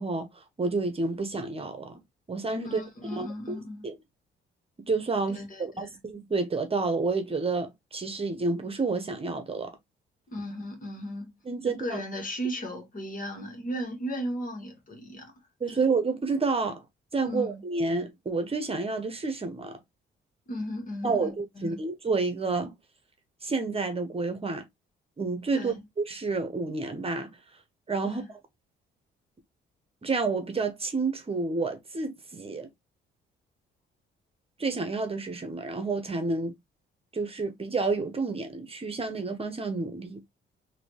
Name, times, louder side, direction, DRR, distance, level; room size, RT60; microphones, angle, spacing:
voice 1, 0.0-2.0 2.3-2.8 3.1-3.9 4.9-9.7 11.5-12.0 15.6-16.8 17.1-19.8 21.0-22.7 23.4-24.6 25.2-27.4 27.9-28.2 30.0-32.7 34.6-36.5 37.1-40.2, right 3 dB, 30° right, 1.1 m, -29 dB
voice 2, 2.6-3.9 5.3-6.0 10.3-11.3 11.6-15.3 15.7-15.8 17.2-17.6 20.5-21.8 25.5-25.8 28.0-28.3, equal, 40° left, 1.8 m, -36 dB
3.9 x 2.9 x 3.3 m
cardioid pair, 90°, 20 cm